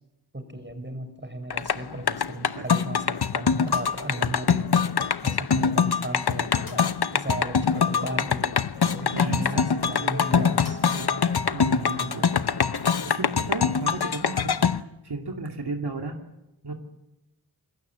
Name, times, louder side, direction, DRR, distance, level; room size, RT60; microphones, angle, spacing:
voice 1, 0.3-4.7 5.2-8.6 8.8-10.8, right 1 dB, 30° right, 8 dB, 5.3 m, -35 dB
sound 1, 1.4-1.5 2.0-2.1 3.7-4.8 5.3-5.4 6.6-7.0 7.4-7.5 7.7-7.8 10.6-11.2 11.8-11.9 12.9-13.0, left 3 dB, 60° left, 3.0 m, -48 dB
sound 2, 1.5-14.8, left 6 dB, 75° left, 0.9 m, -24 dB
Bowed string instrument, 9.1-13.9, right 2 dB, 30° left, 7.9 m, -43 dB
voice 2, 9.1-10.5 10.8-11.1 11.5-12.7 13.1-16.2 16.6-16.7, right 3 dB, 80° right, 3 dB, 2.5 m, -34 dB
28.0 x 20.0 x 8.3 m, 0.94 s
wide cardioid pair, 45°, 39 cm